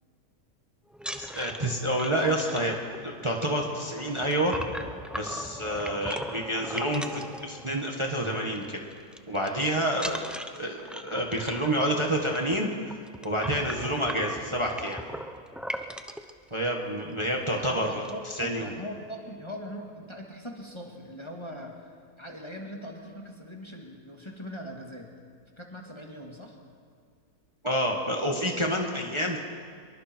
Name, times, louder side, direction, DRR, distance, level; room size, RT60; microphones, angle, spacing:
sound 1, 0.9-8.1 8.4-8.7 8.9-9.5 9.9-16.3 17.0-17.1 17.4-17.6 17.8-18.4, equal, ahead, 0.4 m, -39 dB
voice 1, 1.1-2.7 3.0-4.6 5.2-8.8 9.3-10.2 10.6-13.0 13.2-15.0 16.5-18.7 27.6-29.4, right 1 dB, 20° right, 0 dB, 1.8 m, -28 dB
voice 2, 17.5-21.9 22.2-25.1 25.6-26.6, equal, 20° left, 0 dB, 2.2 m, -41 dB
25.0 x 23.0 x 4.6 m, 2.2 s
omnidirectional pair, 1.6 m